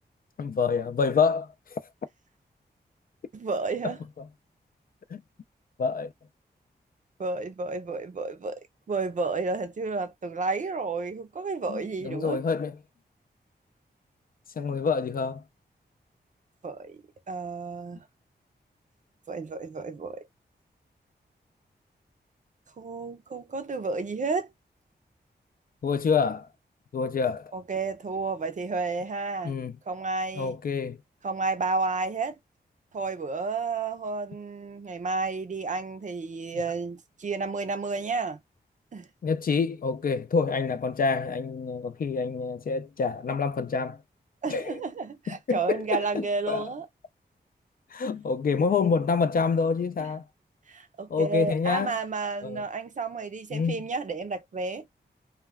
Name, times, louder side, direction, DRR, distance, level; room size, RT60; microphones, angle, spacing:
voice 1, 0.4-1.8 3.8-3.9 5.1-5.2 5.8-6.1 11.7-12.7 14.6-15.4 25.8-26.5 26.9-27.5 29.4-29.7 30.3-31.0 39.2-44.0 44.5-44.8 45.3-46.7 47.9-50.2 51.1-52.0 52.4-52.6 53.5-53.8, left 5 dB, 55° left, 0.4 m, -27 dB
voice 2, 3.3-4.0 7.2-8.6 8.9-12.4 16.6-18.0 19.3-20.3 22.8-24.5 27.5-29.5 29.9-30.6 31.2-32.4 32.9-38.4 38.9-39.1 44.4-46.9 50.0-50.1 50.7-54.9, right 4 dB, 45° right, 0.5 m, -31 dB
2.3 x 2.3 x 3.3 m
wide cardioid pair, 140°, 18 cm